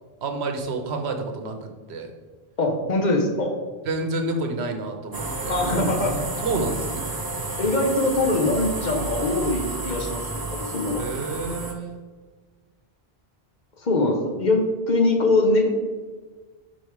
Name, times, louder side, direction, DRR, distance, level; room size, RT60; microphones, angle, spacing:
voice 1, 0.2-2.1 3.9-5.6 6.4-7.0 11.0-12.0, right 2 dB, 80° right, 4 dB, 1.1 m, -29 dB
voice 2, 2.6-3.6 5.5-6.2 7.6-11.0 13.8-15.7, left 2 dB, 45° left, 2 dB, 1.0 m, -22 dB
sound 1, 5.1-11.7, right 2 dB, 30° right, 0.5 m, -31 dB
5.2 x 4.5 x 4.7 m, 1.4 s
omnidirectional pair, 1.1 m